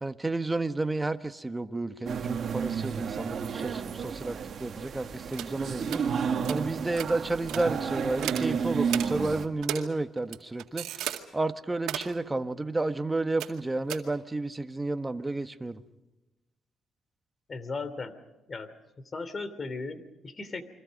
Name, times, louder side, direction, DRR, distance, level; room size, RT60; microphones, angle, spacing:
voice 1, 0.0-15.8, right 2 dB, 15° right, 9 dB, 1.3 m, -31 dB
sound 1, 2.1-9.5, right 6 dB, 55° right, 2.0 m, -32 dB
sound 2, 5.3-5.5 5.9-6.0 6.4-6.6 6.9-7.1 7.5-7.6 8.2-8.5 8.9-9.1 9.6-9.9 10.2-11.2 11.8-12.1 13.4-13.6 13.9-14.0, right 12 dB, 85° right, 2.0 m, -34 dB
voice 2, 17.5-18.1 18.5-18.7 19.1-20.6, left 3 dB, 35° left, 13 dB, 2.9 m, -36 dB
30.0 x 23.5 x 5.3 m, 1.0 s
cardioid pair, 90°, 0 cm